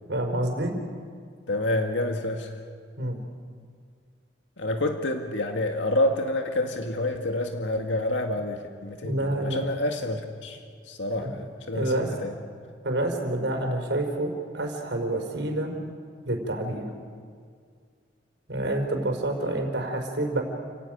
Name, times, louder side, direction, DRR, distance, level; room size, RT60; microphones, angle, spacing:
voice 1, 0.0-0.7 3.0-3.2 9.0-9.6 11.1-11.3 11.7-12.1 12.8-15.8 16.3-16.9 18.5-20.4, right 1 dB, 75° right, 2 dB, 5.0 m, -28 dB
voice 2, 1.5-2.5 4.6-12.3, left 1 dB, 85° left, 4 dB, 1.9 m, -28 dB
29.5 x 16.5 x 9.3 m, 2.1 s
head